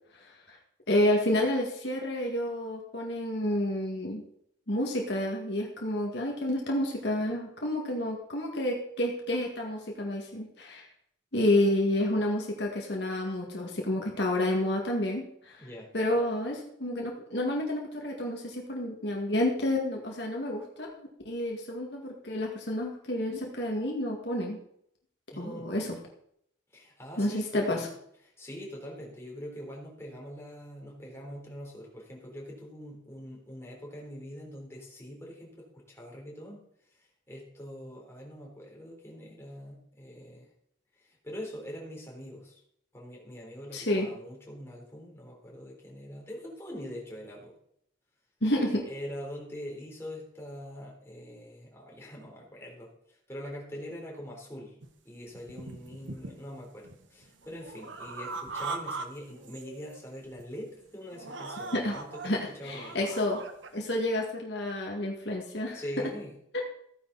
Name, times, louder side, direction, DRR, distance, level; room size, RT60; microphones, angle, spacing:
voice 1, 0.1-0.6 0.9-4.2 4.7-10.9 11.3-15.7 15.9-20.9 21.2-24.6 25.4-26.0 27.2-27.9 43.7-44.1 48.4-48.9 61.7-61.9 62.2-63.4 63.7-66.1 66.5-66.6, left 1 dB, 60° left, -1 dB, 2.2 m, -30 dB
voice 2, 15.6-15.9 25.3-25.7 26.7-27.9 28.4-40.5 41.0-42.6 42.9-47.5 48.9-54.8 55.1-63.0 65.7-66.4, equal, 15° left, -2 dB, 3.7 m, -43 dB
sound 1, 54.8-54.9 55.3-56.5 56.8-59.1 59.3-60.0 60.4-60.6 61.1-62.3 62.6-63.7, right 3 dB, 75° right, 1.3 m, -40 dB
15.5 x 9.9 x 4.2 m, 0.71 s
head